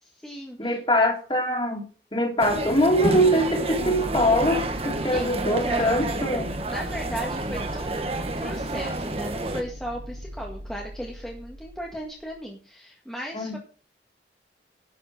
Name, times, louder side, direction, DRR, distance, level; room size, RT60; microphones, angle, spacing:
voice 1, 0.0-0.8 5.1-6.1 6.6-13.6, equal, 5° left, -1 dB, 1.8 m, -36 dB
voice 2, 0.6-6.5 13.3-13.6, equal, 30° left, 1 dB, 3.3 m, -23 dB
sound 1, 2.4-9.6, right 2 dB, 35° right, 1.4 m, -29 dB
sound 2, 3.7-12.4, equal, 60° right, 1.8 m, -40 dB
11.5 x 7.8 x 6.1 m, 0.40 s
head